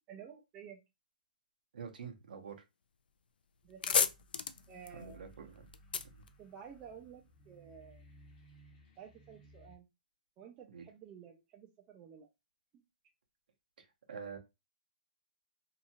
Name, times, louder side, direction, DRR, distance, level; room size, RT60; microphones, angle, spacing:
voice 1, 0.1-0.8 3.6-4.1 4.7-5.3 6.4-8.0 9.0-9.9 10.4-12.3 12.7-12.8, right 7 dB, 15° right, 3 dB, 0.3 m, -52 dB
voice 2, 1.7-2.5 4.9-5.5 10.7-10.8 14.1-14.4, right 6 dB, 70° right, 5 dB, 0.8 m, -45 dB
sound 1, 3.1-3.2 3.5-7.1, left 6 dB, 85° left, 0.3 m, -35 dB
sound 2, 3.6-9.8, right 1 dB, 20° left, 0.7 m, -60 dB
2.7 x 2.3 x 2.7 m, 0.23 s
hypercardioid pair, 165°, 5 cm